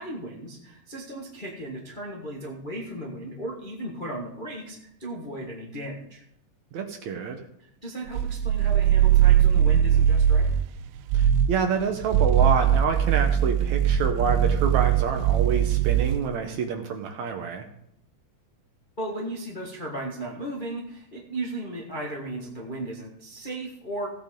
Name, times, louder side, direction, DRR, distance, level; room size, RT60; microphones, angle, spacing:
voice 1, 0.0-6.2 7.6-10.5 19.0-24.1, right 1 dB, 30° left, -2 dB, 0.9 m, -36 dB
voice 2, 6.7-7.4 11.1-17.7, right 6 dB, 65° right, 5 dB, 2.1 m, -27 dB
sound 1, 8.1-10.7 11.1-11.6 12.0-16.3, right 9 dB, 80° right, 2.1 m, -21 dB
16.5 x 9.1 x 3.8 m, 0.76 s
omnidirectional pair, 4.0 m